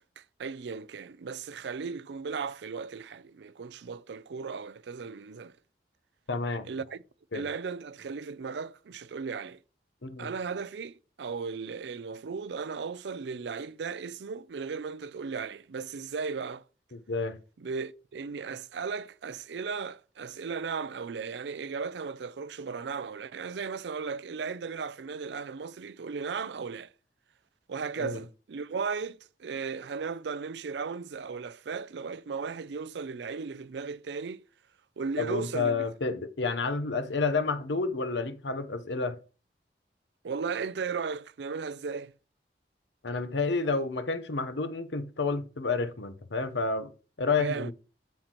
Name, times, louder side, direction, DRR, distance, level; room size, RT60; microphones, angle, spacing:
voice 1, 0.0-5.5 6.6-7.0 7.3-9.6 10.2-16.6 17.6-26.9 27.7-34.4 35.0-35.8 40.2-42.1 47.4-47.7, right 5 dB, 75° right, 0.4 m, -36 dB
voice 2, 6.3-6.7 7.3-7.5 10.0-10.3 16.9-17.4 28.0-28.2 35.2-39.2 43.0-46.9 47.2-47.7, left 4 dB, 80° left, 0.9 m, -30 dB
13.0 x 5.7 x 3.0 m
head